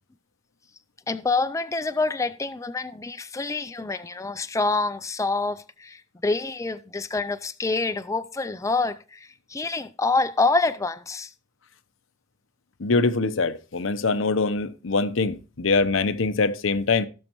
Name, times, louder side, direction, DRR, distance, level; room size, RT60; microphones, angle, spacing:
voice 1, 1.1-11.3, left 3 dB, 15° left, 0.4 m, -26 dB
voice 2, 12.8-17.1, left 3 dB, 85° left, 0.8 m, -23 dB
18.0 x 6.4 x 3.0 m
head